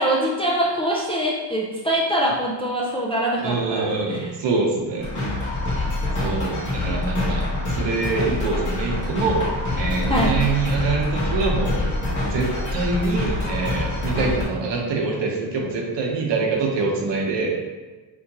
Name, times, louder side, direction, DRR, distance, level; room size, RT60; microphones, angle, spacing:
voice 1, 0.0-4.3 10.1-10.4, right 1 dB, 15° left, -4 dB, 0.3 m, -23 dB
voice 2, 3.4-5.1 6.2-9.5 9.8-11.9 12.3-17.5, right 3 dB, 65° right, -1 dB, 1.0 m, -25 dB
sound 1, 5.0-14.4, left 2 dB, 40° left, 1.5 m, -25 dB
4.2 x 3.8 x 2.9 m, 1.3 s
wide cardioid pair, 170°, 45 cm